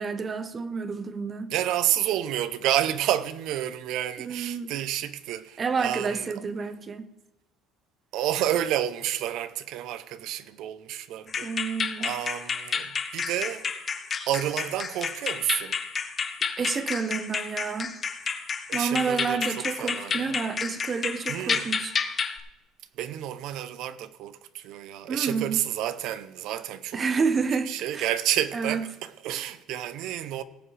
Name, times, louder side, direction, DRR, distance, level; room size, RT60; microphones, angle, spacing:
voice 1, 0.0-1.5 4.2-4.8 5.6-7.1 11.4-12.1 16.6-18.0 18.7-22.0 25.1-25.7 26.9-28.1 28.5-28.9, right 5 dB, 30° right, 0.7 m, -29 dB
voice 2, 1.5-6.3 8.1-11.5 12.0-13.7 14.3-15.8 18.7-20.5 21.3-21.7 23.0-27.3 27.7-30.4, right 12 dB, 65° right, 0.6 m, -30 dB
sound 1, 11.3-22.4, left 5 dB, 30° left, 0.8 m, -31 dB
17.5 x 7.6 x 3.3 m
cardioid pair, 125°, 0 cm